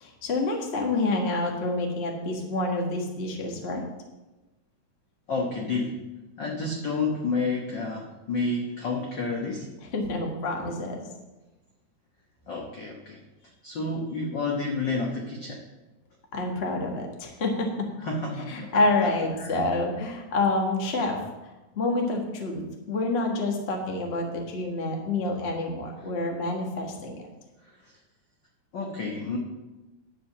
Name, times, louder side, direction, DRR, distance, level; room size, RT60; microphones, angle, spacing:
voice 1, 0.0-3.8 9.8-11.0 16.3-17.7 18.5-21.2 21.7-22.6 22.9-27.2, left 2 dB, 55° left, 1 dB, 0.7 m, -28 dB
voice 2, 5.3-6.0 6.4-9.7 12.5-15.6 18.0-18.7 19.4-19.6 28.7-29.4, left 3 dB, 75° left, -1 dB, 1.0 m, -30 dB
11.0 x 5.2 x 7.1 m, 1.1 s
omnidirectional pair, 3.7 m